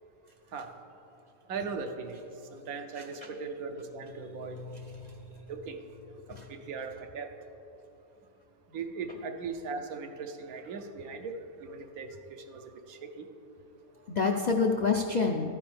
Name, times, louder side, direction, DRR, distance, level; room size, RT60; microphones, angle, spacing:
voice 1, 1.5-2.2 2.5-4.6 5.5-5.8 6.3-7.3 8.7-13.3, right 4 dB, 90° right, 6 dB, 1.2 m, -39 dB
voice 2, 4.5-5.3 6.3-6.5 14.1-15.5, left 4 dB, 80° left, 3 dB, 0.4 m, -29 dB
13.0 x 9.6 x 3.4 m, 2.8 s
omnidirectional pair, 1.5 m